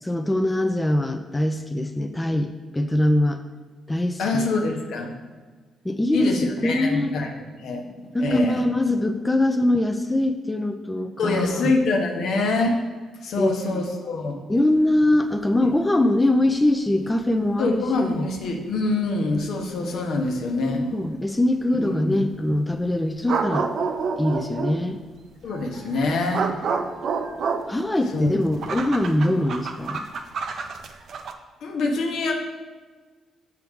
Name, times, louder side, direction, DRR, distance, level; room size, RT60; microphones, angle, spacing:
voice 1, 0.0-3.4 3.9-4.5 5.8-6.3 6.6-7.1 8.1-11.7 13.4-13.9 14.5-18.3 20.6-23.7 24.2-25.0 27.7-30.1, left 1 dB, 10° left, 6 dB, 0.4 m, -23 dB
voice 2, 4.2-5.1 6.1-7.9 8.2-8.6 11.2-12.8 13.2-14.4 17.6-20.8 21.8-22.3 25.4-26.6 28.1-28.3 31.6-32.3, left 3 dB, 75° left, 2 dB, 0.9 m, -25 dB
sound 1, 18.4-18.5 19.4-19.5 23.3-24.8 25.5-31.3, right 5 dB, 60° right, 0.5 m, -29 dB
6.7 x 4.5 x 3.6 m, 1.4 s
cardioid pair, 90°, 0 cm